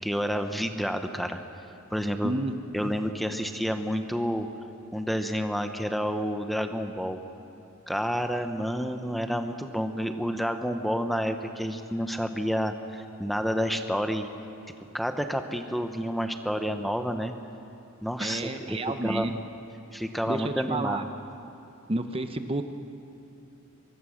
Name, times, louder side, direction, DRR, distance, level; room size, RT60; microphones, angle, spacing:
voice 1, 0.0-1.4 1.9-2.3 2.7-4.5 4.9-7.2 7.9-14.3 14.9-17.3 18.0-18.5 19.0-19.5 19.9-21.1, equal, ahead, 6 dB, 0.8 m, -29 dB
voice 2, 2.2-2.5 2.8-2.9 18.2-19.3 20.3-21.0 21.9-22.6, right 2 dB, 25° right, 8 dB, 0.8 m, -30 dB
24.5 x 23.0 x 6.4 m, 2.8 s
head